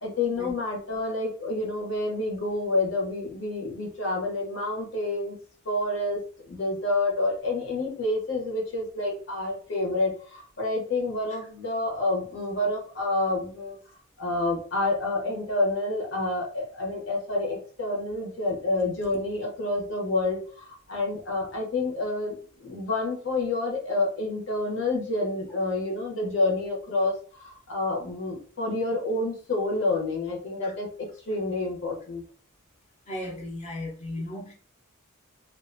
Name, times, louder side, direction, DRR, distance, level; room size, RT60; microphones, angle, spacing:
voice 1, 0.0-5.4 5.6-13.8 14.2-32.2, left 2 dB, 65° left, 0.9 m, -28 dB
voice 2, 33.1-34.5, left 1 dB, 35° left, 0.6 m, -35 dB
2.5 x 2.2 x 2.6 m
head